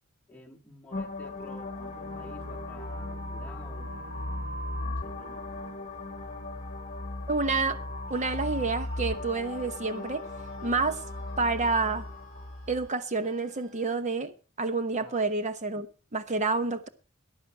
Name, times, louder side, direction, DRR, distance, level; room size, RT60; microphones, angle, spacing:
voice 1, 0.3-4.2 4.5-5.4 15.0-15.3, left 2 dB, 5° left, 1.9 m, -51 dB
sound 1, 0.9-12.9, left 2 dB, 35° left, 1.5 m, -37 dB
Bowed string instrument, 1.8-6.0, right 2 dB, 85° right, 1.4 m, -51 dB
voice 2, 7.3-7.8 8.1-10.2 10.6-11.0 11.4-12.1 12.7-16.9, right 3 dB, 35° right, 1.0 m, -29 dB
Screaming, 8.1-14.0, right 1 dB, 65° right, 3.0 m, -53 dB
14.5 x 10.5 x 4.6 m
head